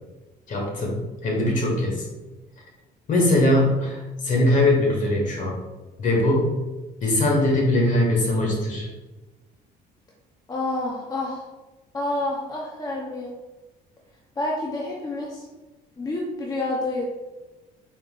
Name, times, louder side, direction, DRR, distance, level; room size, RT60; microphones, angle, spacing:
voice 1, 0.5-2.1 3.1-5.6 6.0-6.6 7.0-8.9, left 1 dB, 50° left, -1 dB, 1.3 m, -21 dB
voice 2, 10.5-11.4 11.9-13.3 14.4-15.5 16.0-17.1, left 2 dB, 20° left, -2 dB, 0.6 m, -28 dB
4.4 x 3.7 x 2.4 m, 1.1 s
cardioid pair, 110°, 17 cm